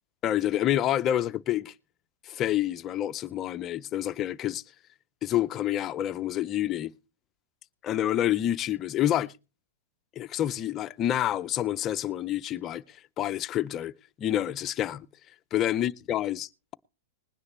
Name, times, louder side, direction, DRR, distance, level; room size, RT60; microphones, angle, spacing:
voice 1, 0.2-1.7 2.3-4.6 5.2-6.9 7.8-9.3 10.2-12.8 13.2-13.9 14.2-15.1 15.5-16.7, left 12 dB, 25° left, 0.5 m, -28 dB
20.5 x 9.7 x 3.1 m
hypercardioid pair, 145°, 0 cm